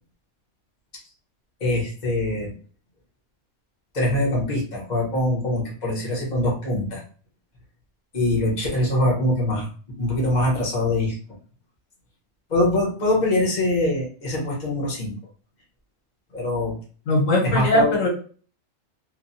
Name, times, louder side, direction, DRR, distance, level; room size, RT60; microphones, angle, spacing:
voice 1, 1.6-2.5 3.9-7.0 8.1-11.2 12.5-15.1 16.3-16.7 17.4-18.0, left 1 dB, 35° left, -3 dB, 1.1 m, -23 dB
voice 2, 17.1-18.1, left 1 dB, 75° left, 0 dB, 1.2 m, -20 dB
3.1 x 2.2 x 2.6 m, 0.40 s
omnidirectional pair, 1.3 m